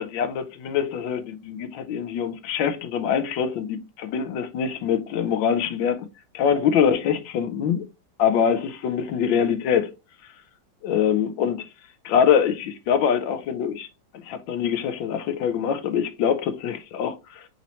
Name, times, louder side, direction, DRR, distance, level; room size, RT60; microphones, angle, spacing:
voice 1, 0.0-6.1 6.3-7.9 8.2-9.9 10.8-11.6 12.0-13.9 14.1-17.2, left 8 dB, 85° left, 1.4 m, -24 dB
4.3 x 4.1 x 2.9 m
omnidirectional pair, 2.1 m